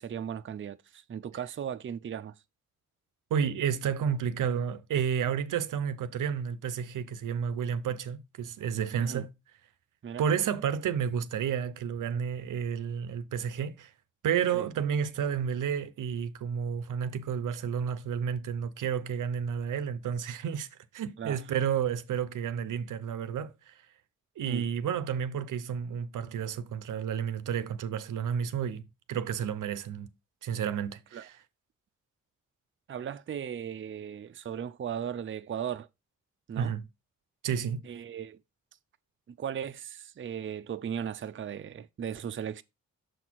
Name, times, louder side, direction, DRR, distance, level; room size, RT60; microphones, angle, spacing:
voice 1, 0.0-2.3 9.0-9.3 10.0-10.2 14.5-14.7 21.2-21.4 24.4-24.7 31.1-31.3 32.9-35.9 36.5-36.7 37.8-38.4 39.4-42.6, right 8 dB, 40° right, 0.5 m, -37 dB
voice 2, 3.3-9.3 10.2-13.9 14.2-20.7 20.9-23.7 24.4-30.1 30.4-31.4 36.6-36.8 37.4-37.8, right 8 dB, 90° right, 0.7 m, -31 dB
6.5 x 4.2 x 4.5 m
cardioid pair, 70°, 30 cm